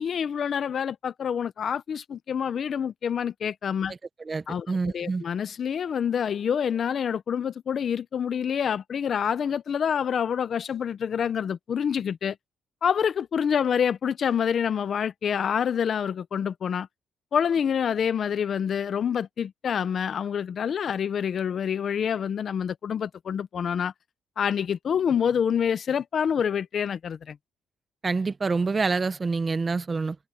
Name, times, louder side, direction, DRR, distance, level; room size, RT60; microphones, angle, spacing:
voice 1, 0.0-3.9 4.5-12.4 12.8-16.9 17.3-23.9 24.4-27.4, left 7 dB, 55° left, 0.8 m, -27 dB
voice 2, 4.3-5.2 28.0-30.2, right 4 dB, 30° right, 0.9 m, -27 dB
cardioid pair, 90°, 0 cm